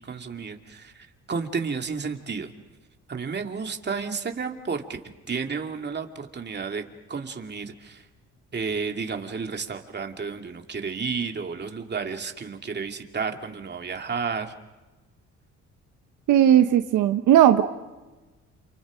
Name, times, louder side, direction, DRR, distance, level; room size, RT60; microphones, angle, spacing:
voice 1, 0.0-2.5 3.1-5.0 5.3-8.0 8.5-14.5, right 5 dB, 35° right, 4 dB, 2.5 m, -32 dB
voice 2, 16.3-17.6, right 11 dB, 85° right, 8 dB, 1.1 m, -17 dB
29.0 x 28.5 x 5.2 m, 1.2 s
cardioid pair, 90°, 30 cm